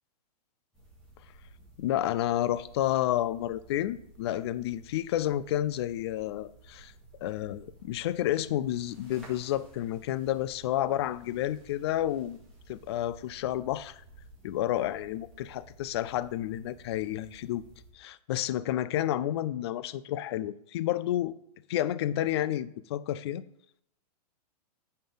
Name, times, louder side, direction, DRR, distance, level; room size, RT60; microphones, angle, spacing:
sound 1, 0.7-17.9, right 1 dB, 5° left, 2.1 m, -55 dB
voice 1, 1.8-6.9 7.2-12.4 12.7-14.0 14.4-17.6 17.9-21.3 21.7-23.4, left 13 dB, 40° left, 0.4 m, -30 dB
9.2 x 4.4 x 5.3 m
hypercardioid pair, 160°, 21 cm